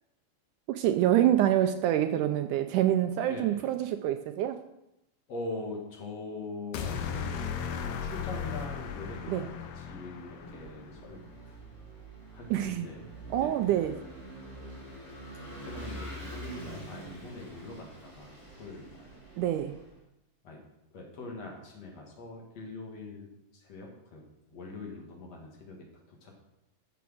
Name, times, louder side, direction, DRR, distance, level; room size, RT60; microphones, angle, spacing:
voice 1, 0.7-4.6 9.3-9.5 12.5-12.9 13.3-13.9 19.4-19.8, right 12 dB, 80° right, 8 dB, 1.9 m, -26 dB
voice 2, 3.3-3.7 5.3-7.3 7.8-11.2 11.5-11.6 12.3-13.0 13.4-14.0 15.6-19.2 20.4-20.6 20.9-23.3 23.5-24.2 24.5-25.8 26.1-26.3, left 3 dB, 50° left, 0 dB, 2.8 m, -42 dB
sound 1, 6.7-11.0, left 6 dB, 75° left, 2.5 m, -36 dB
Vehicle / Engine, 10.1-19.9, right 1 dB, 10° left, 3.1 m, -45 dB
14.0 x 6.1 x 6.3 m, 0.87 s
omnidirectional pair, 4.0 m